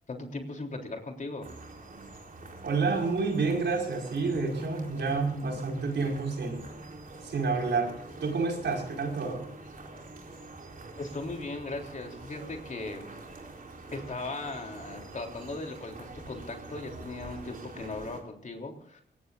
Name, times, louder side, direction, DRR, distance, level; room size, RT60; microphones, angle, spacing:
voice 1, 0.1-1.5 11.0-13.1 13.9-19.0, left 2 dB, 45° left, 2 dB, 3.5 m, -38 dB
sound 1, 1.4-18.2, right 2 dB, 50° right, 3.9 m, -46 dB
voice 2, 2.6-6.6 7.2-7.9 8.2-9.4, right 4 dB, 70° right, 1 dB, 5.3 m, -29 dB
sound 2, 4.3-10.8, left 1 dB, 10° left, 4.4 m, -45 dB
23.0 x 19.5 x 2.6 m, 0.66 s
wide cardioid pair, 105°, 19 cm